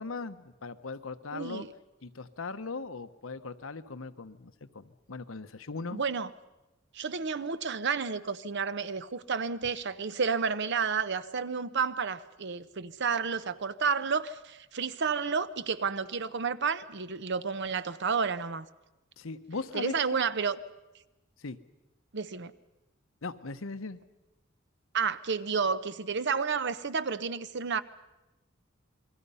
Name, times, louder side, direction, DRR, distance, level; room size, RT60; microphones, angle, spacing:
voice 1, 0.0-1.6 2.0-6.0 19.2-19.9 21.4-21.6 23.2-24.0, left 3 dB, 75° left, 1.0 m, -39 dB
voice 2, 1.3-1.7 5.9-6.3 6.9-18.7 19.7-20.6 22.1-22.5 24.9-27.8, right 5 dB, 60° right, 0.8 m, -31 dB
28.0 x 22.0 x 5.6 m
head